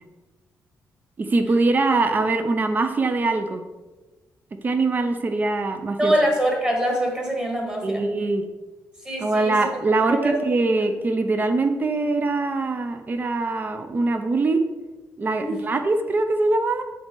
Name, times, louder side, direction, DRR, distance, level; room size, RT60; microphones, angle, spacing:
voice 1, 1.2-3.6 4.6-6.1 7.8-8.4 9.2-14.6 15.2-16.8, right 3 dB, 30° right, 7 dB, 0.6 m, -22 dB
voice 2, 6.0-8.0 9.0-9.6 10.2-10.3 15.4-15.6, right 1 dB, 15° right, 0 dB, 1.5 m, -23 dB
7.6 x 4.2 x 3.8 m, 1.2 s
cardioid pair, 135°, 6 cm